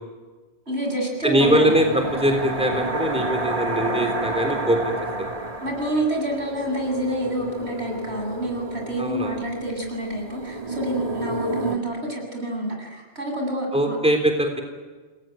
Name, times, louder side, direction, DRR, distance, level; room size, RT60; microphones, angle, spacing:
voice 1, 0.7-1.7 5.6-14.0, right 1 dB, 75° right, 1 dB, 7.9 m, -27 dB
voice 2, 1.2-4.8 5.2-5.3 9.0-9.4 13.7-14.6, equal, 5° right, 3 dB, 3.6 m, -22 dB
sound 1, 1.4-11.8, right 2 dB, 35° right, 1.8 m, -30 dB
28.5 x 21.5 x 9.3 m, 1.3 s
omnidirectional pair, 1.1 m